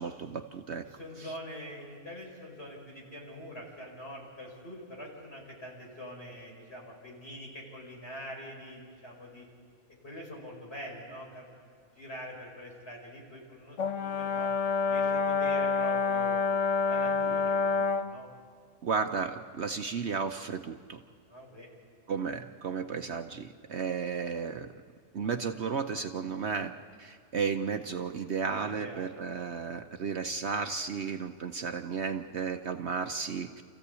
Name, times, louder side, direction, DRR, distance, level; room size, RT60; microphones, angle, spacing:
voice 1, 0.0-0.9 1.2-1.3 18.8-21.0 22.1-24.7 25.1-26.7 27.0-33.6, right 5 dB, 55° right, 6 dB, 1.0 m, -33 dB
voice 2, 0.8-9.5 10.0-11.5 11.9-14.5 14.9-16.4 16.9-18.3 21.3-21.7 28.8-29.2, equal, 45° left, -2 dB, 5.7 m, -44 dB
Brass instrument, 13.8-18.1, left 4 dB, 60° left, 1.2 m, -28 dB
28.0 x 15.5 x 8.3 m, 2.3 s
omnidirectional pair, 1.5 m